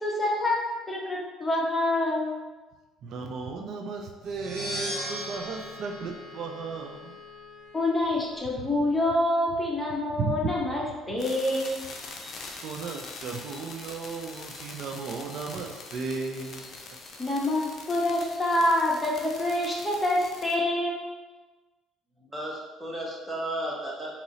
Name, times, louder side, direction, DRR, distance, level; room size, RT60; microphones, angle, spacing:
voice 1, 0.0-2.4 7.7-11.8 17.2-21.0, left 1 dB, 15° left, -3 dB, 1.0 m, -26 dB
voice 2, 3.0-7.2 10.1-10.6 12.6-16.9, right 4 dB, 65° right, 2 dB, 0.4 m, -35 dB
sound 1, 4.2-7.1, right 1 dB, 85° right, 1.2 m, -37 dB
Wind instrument woodwind instrument, 4.7-8.7, left 4 dB, 35° right, 1.5 m, -48 dB
sound 2, 11.2-20.6, left 3 dB, 50° left, 0.6 m, -43 dB
voice 3, 22.2-24.1, right 1 dB, 15° right, -4 dB, 1.1 m, -34 dB
3.9 x 2.9 x 2.7 m, 1.2 s
supercardioid pair, 80°, 0 cm